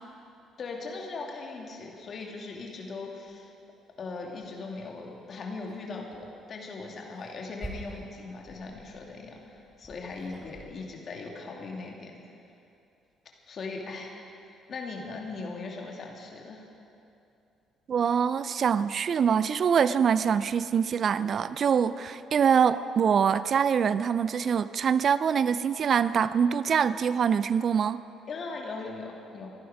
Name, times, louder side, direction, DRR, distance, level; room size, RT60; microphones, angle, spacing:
voice 1, 0.6-3.5 4.0-12.2 13.5-14.1 14.5-16.7 28.3-29.5, left 3 dB, 50° left, 0 dB, 2.7 m, -39 dB
sound 1, 3.3-3.4 3.9-4.0 4.4-4.8 5.6-5.8 6.1-6.3 6.9-10.7, right 1 dB, 10° right, 4.9 m, -46 dB
voice 2, 17.9-28.0, right 7 dB, 50° right, 15 dB, 0.4 m, -24 dB
24.5 x 11.0 x 5.1 m, 2.7 s
hypercardioid pair, 50°, 0 cm